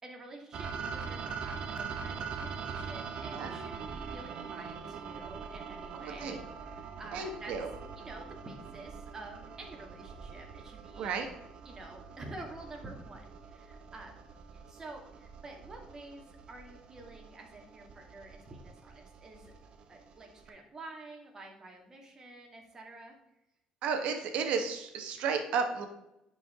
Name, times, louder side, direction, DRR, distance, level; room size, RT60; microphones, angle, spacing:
voice 1, 0.0-7.5 8.0-11.2 11.7-14.2 14.5-19.5 19.9-23.2, right 2 dB, 25° right, 1 dB, 2.2 m, -49 dB
sound 1, 0.5-20.5, right 6 dB, 50° right, 1.0 m, -43 dB
voice 2, 5.9-6.4 7.1-7.7 11.0-11.3 23.8-25.9, right 5 dB, 70° right, 4 dB, 1.5 m, -33 dB
10.5 x 5.0 x 3.8 m, 0.88 s
cardioid pair, 120°, 2 cm